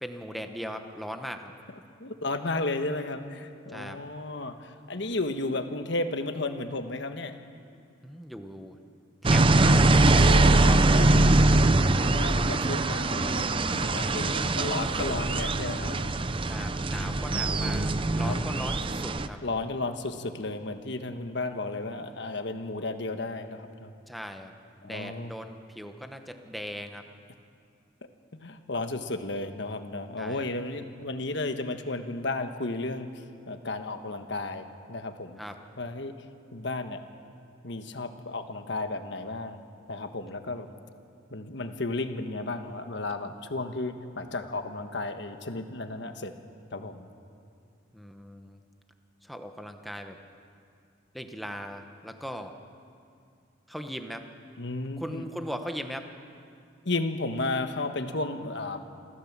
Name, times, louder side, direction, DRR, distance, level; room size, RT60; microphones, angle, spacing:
voice 1, 0.0-1.5 3.7-4.0 8.0-8.8 9.2-9.9 16.5-19.4 24.1-27.0 30.2-30.5 35.4-35.5 47.9-48.6 49.2-50.2 51.1-52.5 53.7-54.2 55.0-56.1, equal, ahead, 5 dB, 1.1 m, -39 dB
voice 2, 2.0-7.3 10.0-11.3 12.0-16.1 18.2-18.4 19.4-23.9 24.8-25.3 28.4-35.4 35.8-36.1 36.5-37.0 37.6-39.6 39.9-40.7 41.3-46.3 46.7-47.1 54.6-55.2 56.8-58.8, left 2 dB, 65° left, 7 dB, 1.4 m, -33 dB
sound 1, 9.2-19.3, right 2 dB, 25° right, 0.6 m, -22 dB
27.5 x 14.5 x 7.5 m, 2.4 s
head